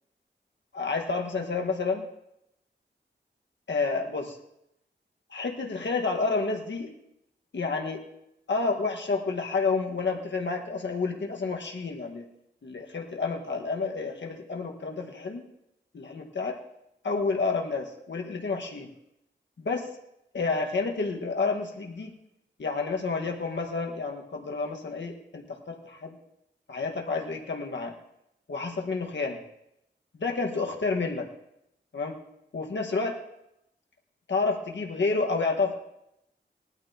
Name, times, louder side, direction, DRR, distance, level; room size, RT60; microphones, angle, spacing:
voice 1, 0.7-2.1 3.7-4.4 5.3-6.9 7.5-8.0 8.5-12.3 12.6-15.4 15.9-16.6 17.0-18.9 19.6-19.9 20.3-22.1 22.6-26.2 26.7-27.9 28.5-29.4 30.1-31.3 31.9-32.1 32.5-33.2 34.3-35.7, left 4 dB, 75° left, 1 dB, 1.6 m, -29 dB
19.5 x 12.5 x 2.9 m, 0.82 s
wide cardioid pair, 70°, 19 cm